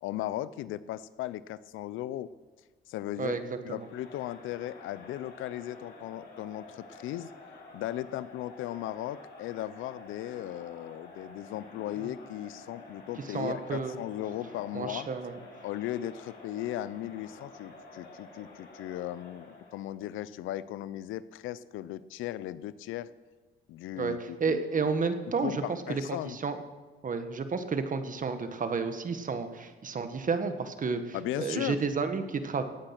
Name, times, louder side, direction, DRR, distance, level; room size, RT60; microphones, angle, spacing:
voice 1, 0.0-2.3 2.9-3.4 3.6-7.3 7.7-15.1 15.6-23.1 23.7-24.9 25.4-26.4 31.1-31.8, left 13 dB, 90° left, 17 dB, 0.5 m, -37 dB
voice 2, 3.2-3.9 13.3-14.0 14.7-15.4 23.9-24.1 24.4-25.6 25.9-26.6 27.0-32.6, right 5 dB, 40° right, 8 dB, 1.5 m, -31 dB
Crowd, 3.7-19.8, left 2 dB, 60° left, 4.7 m, -50 dB
17.5 x 9.0 x 6.0 m, 1.3 s
cardioid pair, 90°, 20 cm